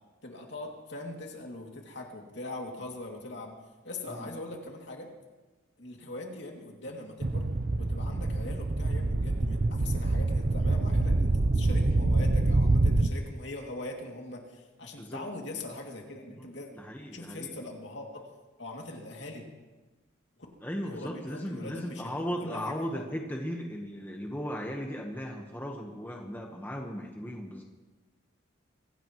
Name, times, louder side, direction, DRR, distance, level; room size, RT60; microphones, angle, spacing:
voice 1, 0.2-3.5 3.8-5.1 5.8-7.5 7.7-16.7 17.1-18.3 18.6-19.4 20.4-20.5 20.8-22.8, left 2 dB, 60° left, 0 dB, 2.6 m, -41 dB
sound 1, 7.2-13.1, right 2 dB, 45° right, 0.6 m, -26 dB
voice 2, 16.7-17.5 20.6-27.6, equal, 10° left, 1 dB, 1.2 m, -37 dB
24.5 x 16.0 x 3.1 m, 1.2 s
head